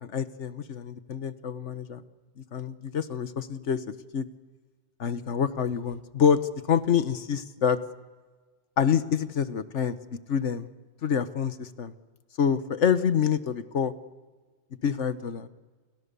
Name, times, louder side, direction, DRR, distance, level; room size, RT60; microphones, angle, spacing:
voice 1, 0.0-2.0 2.4-4.3 5.0-6.4 6.7-7.8 8.8-10.0 10.3-10.7 11.0-11.9 12.4-13.9 14.8-15.5, left 7 dB, 80° left, 12 dB, 1.5 m, -27 dB
29.5 x 29.0 x 6.9 m, 1.4 s
omnidirectional pair, 1.2 m